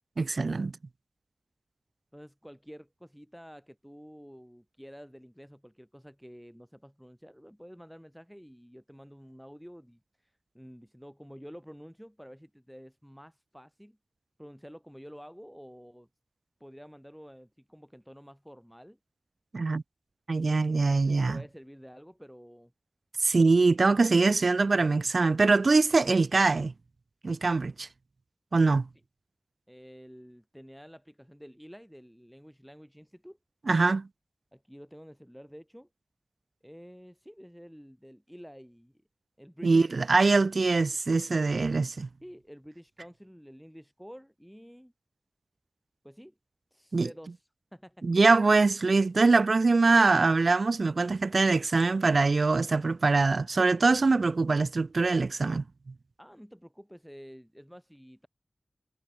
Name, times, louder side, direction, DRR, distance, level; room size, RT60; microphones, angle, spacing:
voice 1, 0.2-0.7 19.5-19.8 20.3-21.4 23.2-26.7 27.2-27.9 28.5-28.9 33.7-34.1 39.6-42.1 46.9-47.1 48.0-55.6, right 3 dB, 75° right, 0.6 m, -23 dB
voice 2, 2.1-14.0 14.4-16.1 16.6-19.0 20.8-22.7 29.7-33.4 34.5-35.9 36.6-39.0 39.4-40.2 42.2-44.9 46.0-46.4 46.7-48.1 56.2-58.3, equal, ahead, 2.9 m, -50 dB
wide cardioid pair, 75°, 0 cm